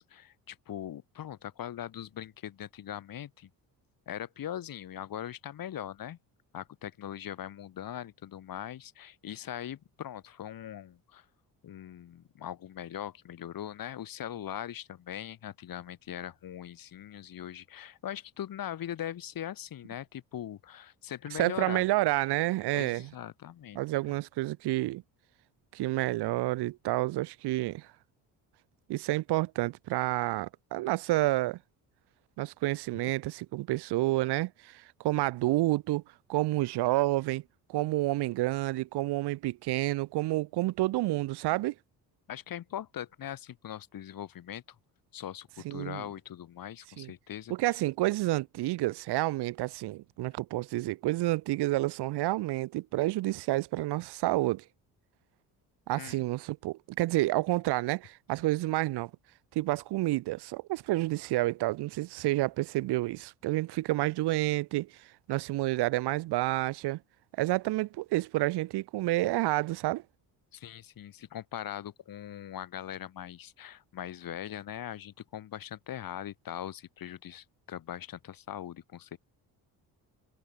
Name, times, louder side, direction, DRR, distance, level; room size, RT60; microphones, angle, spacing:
voice 1, 0.0-3.5 4.1-6.2 6.5-11.2 11.6-21.8 22.7-23.8 24.1-24.2 42.3-44.6 45.1-47.7 56.0-56.2 70.5-79.2, left 10 dB, 60° left, 2.6 m, -41 dB
voice 2, 21.3-23.1 23.7-25.0 25.7-27.9 28.9-31.6 32.4-36.0 36.3-37.4 37.7-41.7 45.6-46.0 47.0-47.1 47.5-54.6 55.9-59.1 59.5-64.9 65.3-67.0 67.4-70.0, right 18 dB, 80° right, 1.4 m, -29 dB
cardioid pair, 80°, 39 cm